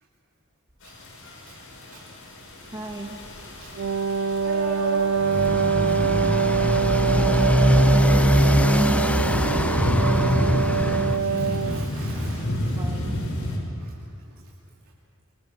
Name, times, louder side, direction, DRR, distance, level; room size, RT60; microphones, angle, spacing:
Mosquitoes and light rain with thunderstorms, 0.8-13.6, left 1 dB, 85° left, 6.2 m, -31 dB
voice 1, 2.6-3.2 12.3-13.2, right 1 dB, 20° right, 0 dB, 1.5 m, -41 dB
Wind instrument woodwind instrument, 3.7-11.9, right 6 dB, 60° right, 0.5 m, -24 dB
voice 2, 4.4-5.1 9.2-10.4 11.2-12.8 13.6-14.0, right 1 dB, 85° right, -5 dB, 2.9 m, -36 dB
Motorcycle, 5.2-11.2, equal, 5° left, 0.7 m, -21 dB
25.5 x 23.5 x 6.7 m, 2.4 s
head